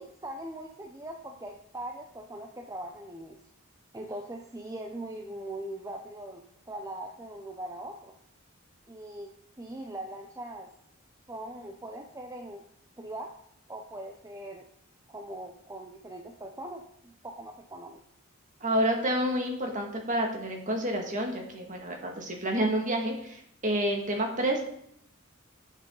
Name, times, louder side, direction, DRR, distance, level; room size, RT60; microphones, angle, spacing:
voice 1, 0.0-3.4 3.9-8.2 8.9-10.7 11.3-12.7 13.0-13.3 13.7-14.6 15.1-18.0, right 1 dB, 15° right, 2 dB, 0.7 m, -41 dB
voice 2, 18.6-24.6, right 1 dB, 40° right, 1 dB, 2.0 m, -29 dB
11.5 x 7.4 x 3.9 m, 0.71 s
head